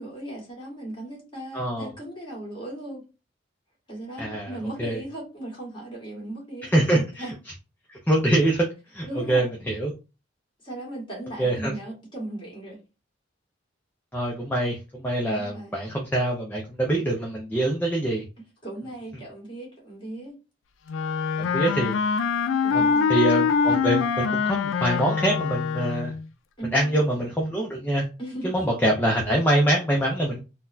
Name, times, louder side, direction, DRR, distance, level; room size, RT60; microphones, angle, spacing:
voice 1, 0.0-3.0 3.9-7.3 9.1-9.5 10.6-12.8 15.2-15.8 18.6-20.4 22.6-23.2 26.6-27.1 28.2-28.6, right 1 dB, 25° left, -4 dB, 1.7 m, -37 dB
voice 2, 1.5-1.9 4.2-4.5 4.8-5.0 6.7-7.0 7.9-8.7 8.9-9.9 11.4-11.7 14.1-18.2 21.5-21.9 22.7-26.1 26.7-28.1 28.4-30.4, right 1 dB, 10° left, -2 dB, 0.5 m, -24 dB
Wind instrument woodwind instrument, 20.9-26.3, left 6 dB, 85° left, 0.3 m, -24 dB
3.9 x 2.2 x 2.6 m, 0.30 s
head